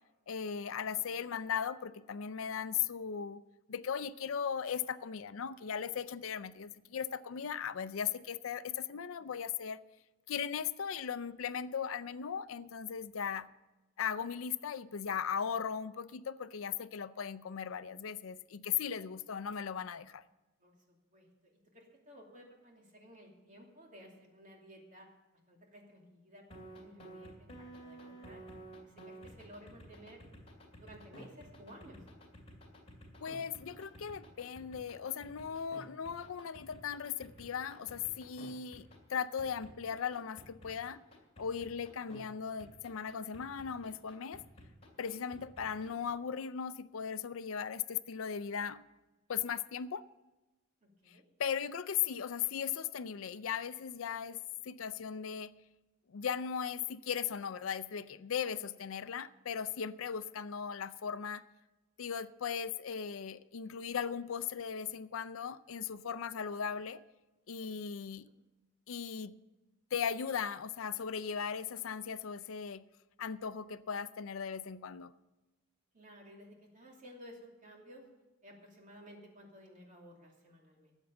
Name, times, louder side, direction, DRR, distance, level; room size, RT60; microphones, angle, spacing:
voice 1, 0.3-3.4 3.7-9.8 10.3-13.5 14.0-20.2 33.2-41.0 41.4-44.4 45.0-48.8 49.3-50.0 51.1-54.4 54.6-55.5 56.1-61.4 62.0-67.0 67.5-68.3 68.9-69.3 69.9-72.8 73.2-75.1, left 7 dB, 75° left, 0.5 m, -38 dB
voice 2, 21.7-25.1 25.5-26.4 26.7-28.4 28.8-30.3 30.8-32.0 50.8-51.2 75.9-78.0 78.4-81.0, equal, 40° right, 2.8 m, -55 dB
sound 1, 26.5-42.2 42.6-46.1, right 1 dB, 30° left, 2.8 m, -52 dB
13.5 x 8.2 x 7.1 m
head